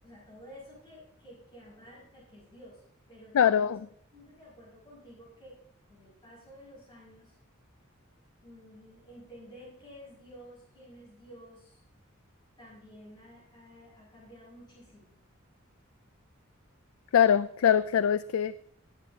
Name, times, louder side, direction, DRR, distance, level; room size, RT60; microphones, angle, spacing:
voice 1, 0.0-3.7 4.1-5.6 5.9-7.4 8.4-11.8 12.6-15.1, equal, 20° left, -8 dB, 5.9 m, -52 dB
voice 2, 3.3-3.8 17.1-18.7, left 8 dB, 80° left, 14 dB, 0.4 m, -23 dB
20.5 x 9.2 x 2.7 m, 0.68 s
head